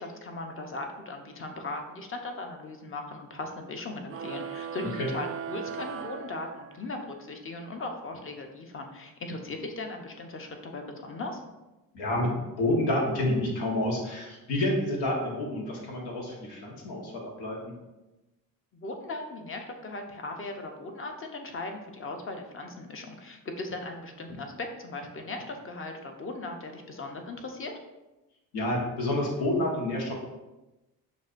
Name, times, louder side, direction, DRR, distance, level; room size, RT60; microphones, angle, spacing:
voice 1, 0.0-11.4 18.7-27.7, left 2 dB, 35° left, 4 dB, 0.7 m, -38 dB
sound 1, 4.1-7.0, right 7 dB, 40° right, 0.4 m, -38 dB
voice 2, 11.9-12.3 12.6-17.7 28.5-30.1, left 1 dB, 85° left, -1 dB, 1.1 m, -29 dB
6.1 x 2.5 x 2.5 m, 1.0 s
supercardioid pair, 65°, 37 cm